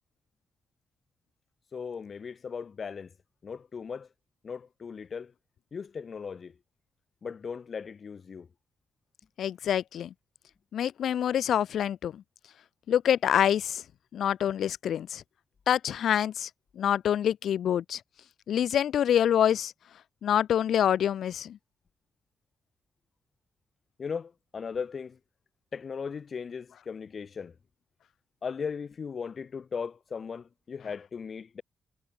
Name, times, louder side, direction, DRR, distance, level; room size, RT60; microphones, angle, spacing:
voice 1, 1.7-3.1 3.4-4.1 4.4-5.3 5.7-6.5 7.2-8.5 24.0-25.2 25.7-27.5 28.4-31.6, left 6 dB, 40° left, 4.1 m, -37 dB
voice 2, 9.4-10.1 10.7-12.2 12.9-13.8 14.1-15.2 15.7-16.5 16.8-18.0 18.5-19.7 20.2-21.6, left 9 dB, 70° left, 1.8 m, -26 dB
wide cardioid pair, 170°, 0 cm